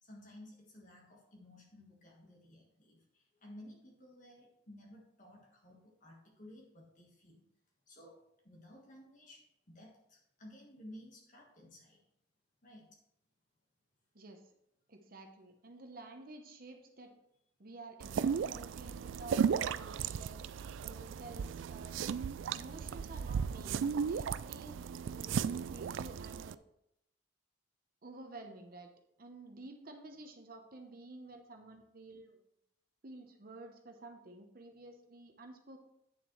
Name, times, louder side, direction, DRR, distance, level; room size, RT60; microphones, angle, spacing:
voice 1, 0.0-7.4 7.9-12.0 12.6-13.0, left 1 dB, 45° left, -1 dB, 1.5 m, -55 dB
voice 2, 14.1-14.5 14.9-17.1 17.6-20.4 20.8-22.0 22.5-24.8 25.1-26.6 28.0-28.9 29.2-32.4 33.0-35.8, right 2 dB, 50° right, 4 dB, 0.9 m, -51 dB
sound 1, 18.0-26.5, right 7 dB, 90° right, 0.3 m, -35 dB
9.0 x 7.1 x 3.2 m, 0.80 s
head